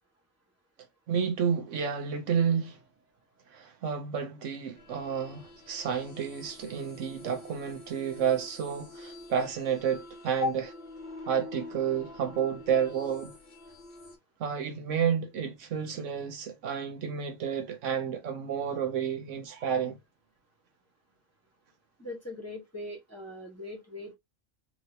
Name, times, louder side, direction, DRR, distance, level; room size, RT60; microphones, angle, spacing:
voice 1, 1.1-2.8 3.5-10.6 11.3-13.3 14.4-20.0, right 7 dB, 70° right, 1.0 m, -30 dB
sound 1, 4.7-14.2, left 2 dB, 50° left, 0.8 m, -47 dB
voice 2, 22.0-24.1, left 3 dB, 10° left, 1.2 m, -37 dB
2.9 x 2.9 x 2.7 m
omnidirectional pair, 1.3 m